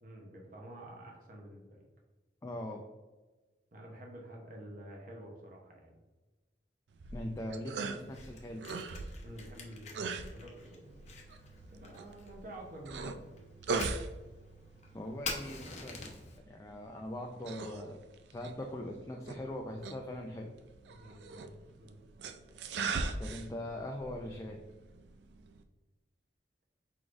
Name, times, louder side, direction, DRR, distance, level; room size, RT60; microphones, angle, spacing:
voice 1, 0.0-1.8 3.7-5.9 9.2-13.2 20.9-22.0, right 1 dB, 50° right, 0 dB, 0.8 m, -50 dB
voice 2, 2.4-2.9 7.1-8.7 14.9-16.1 16.4-18.0 18.3-20.5 23.2-24.6, left 1 dB, 20° left, 2 dB, 0.3 m, -41 dB
sound 1, 6.9-25.6, right 4 dB, 70° right, 0.4 m, -42 dB
Fire, 8.0-16.4, left 3 dB, 40° left, 0.7 m, -47 dB
4.6 x 4.0 x 2.5 m, 1.2 s
head